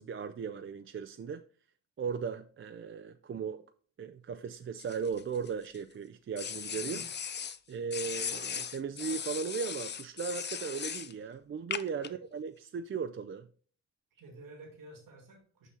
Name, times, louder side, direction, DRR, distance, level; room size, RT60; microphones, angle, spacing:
voice 1, 0.0-1.4 2.0-3.6 4.0-7.0 7.7-13.5, right 6 dB, 40° right, 0.4 m, -37 dB
sound 1, 4.8-5.8 6.4-7.6 7.9-11.1 11.7-12.1, left 7 dB, 35° left, 0.4 m, -38 dB
voice 2, 14.1-15.7, right 2 dB, 85° right, 2.0 m, -51 dB
6.4 x 5.4 x 3.8 m
cardioid pair, 65°, 31 cm